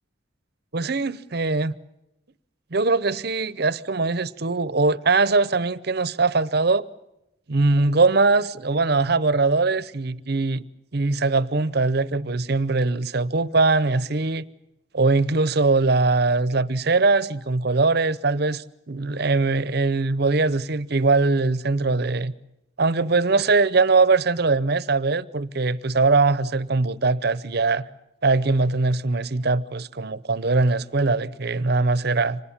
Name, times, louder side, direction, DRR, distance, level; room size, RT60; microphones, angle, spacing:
voice 1, 0.7-1.7 2.7-6.9 7.5-10.6 10.9-14.4 14.9-22.3 22.8-27.8 28.2-32.4, right 3 dB, 50° right, 0.7 m, -21 dB
25.5 x 20.0 x 7.3 m
head